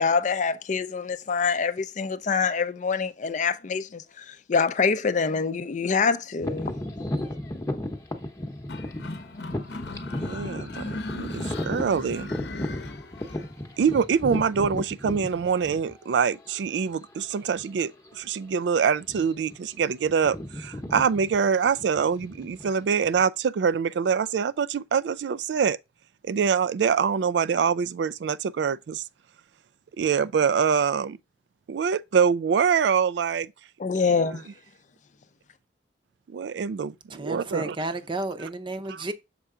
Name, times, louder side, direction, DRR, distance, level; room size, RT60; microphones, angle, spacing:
voice 1, 0.0-6.8 33.8-34.4, left 5 dB, 45° left, 0.5 m, -25 dB
sound 1, 6.4-16.2 16.8-16.9 17.6-17.8 18.1-18.3 19.0-19.5 19.8-23.2, left 1 dB, 20° left, 0.9 m, -34 dB
sound 2, 8.7-13.5, left 2 dB, 70° left, 0.8 m, -38 dB
voice 2, 10.0-12.3 13.8-25.8 26.3-29.0 30.0-31.2 31.7-33.5 34.0-34.2 36.3-37.8, right 6 dB, 75° right, 0.3 m, -25 dB
voice 3, 37.1-39.1, right 2 dB, 30° right, 0.7 m, -32 dB
6.7 x 4.5 x 3.7 m
head